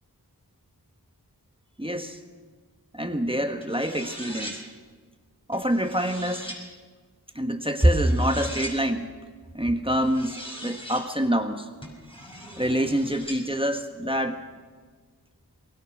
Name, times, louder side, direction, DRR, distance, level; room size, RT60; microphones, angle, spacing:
voice 1, 1.8-2.2 2.9-4.6 5.5-6.5 7.3-9.1 9.5-11.7 12.6-14.4, equal, 15° right, 6 dB, 1.5 m, -25 dB
sound 1, 3.6-4.6 5.5-6.6 7.8-8.8 9.9-11.1 11.8-13.4, equal, 15° left, 6.2 m, -40 dB
23.0 x 21.0 x 6.2 m, 1.5 s
wide cardioid pair, 45°, 39 cm